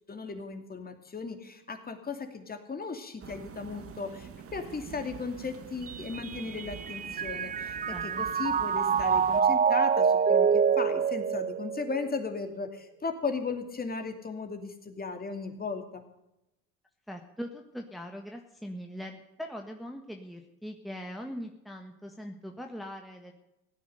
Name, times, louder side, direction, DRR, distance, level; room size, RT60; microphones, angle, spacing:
voice 1, 0.1-16.0, left 4 dB, 25° left, 7 dB, 2.6 m, -36 dB
sound 1, 3.2-9.4, right 7 dB, 40° right, 1.6 m, -46 dB
Mallet percussion, 5.9-12.3, right 6 dB, 25° right, 0.5 m, -26 dB
voice 2, 7.8-8.3 17.1-23.3, equal, ahead, 2 dB, 1.5 m, -41 dB
16.5 x 9.4 x 6.7 m, 0.89 s
supercardioid pair, 85°, 35 cm